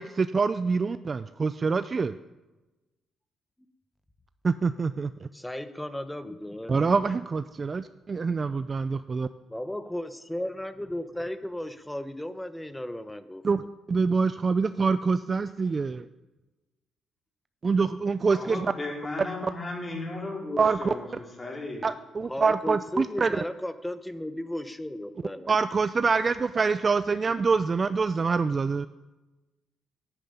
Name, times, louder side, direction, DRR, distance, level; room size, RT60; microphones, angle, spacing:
voice 1, 0.0-2.2 4.4-5.3 6.7-9.3 13.4-13.6 13.9-16.0 17.6-18.6 20.6-20.9 21.8-23.3 25.5-28.9, right 4 dB, 35° right, 12 dB, 0.4 m, -25 dB
voice 2, 5.3-6.8 9.5-13.7 22.2-25.5, left 1 dB, 5° left, 11 dB, 1.0 m, -35 dB
voice 3, 18.3-21.9, left 2 dB, 25° left, -1 dB, 4.5 m, -35 dB
11.0 x 9.0 x 9.4 m, 1.1 s
cardioid pair, 90°, 0 cm